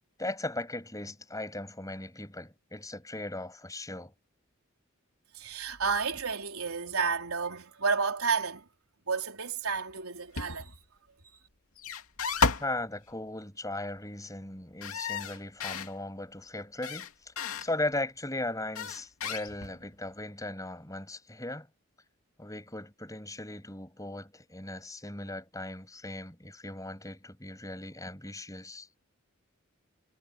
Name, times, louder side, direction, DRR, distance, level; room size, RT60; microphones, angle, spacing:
voice 1, 0.2-4.1 12.6-17.3 17.6-21.7 22.4-28.9, left 2 dB, 15° left, 7.9 m, -38 dB
voice 2, 5.3-8.6 9.1-10.8, right 5 dB, 85° right, 4.1 m, -31 dB
sound 1, 10.4-10.8 11.8-12.8 14.8-15.9 16.8-17.7 18.8-19.9, left 5 dB, 80° left, 2.6 m, -32 dB
head